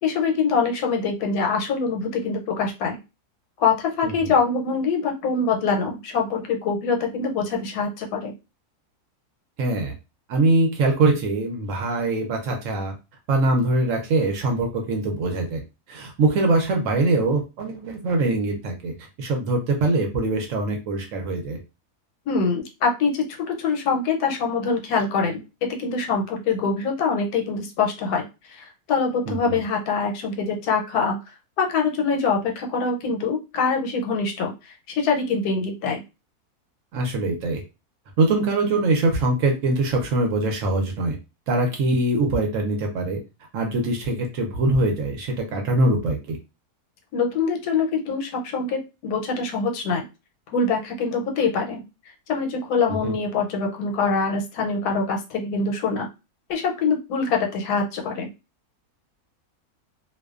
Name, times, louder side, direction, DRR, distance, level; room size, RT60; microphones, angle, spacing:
voice 1, 0.0-3.0 3.6-8.3 22.3-31.2 31.6-36.0 47.1-50.0 50.5-51.8 52.3-56.1 56.5-58.3, left 4 dB, 85° left, 2 dB, 1.1 m, -24 dB
voice 2, 9.6-9.9 10.3-12.9 13.3-15.6 15.9-18.9 19.2-21.6 29.3-29.6 36.9-37.6 38.2-41.1 41.5-43.2 43.5-46.4 53.0-53.1, right 2 dB, 65° right, 2 dB, 0.9 m, -23 dB
2.5 x 2.2 x 2.3 m, 0.28 s
omnidirectional pair, 1.6 m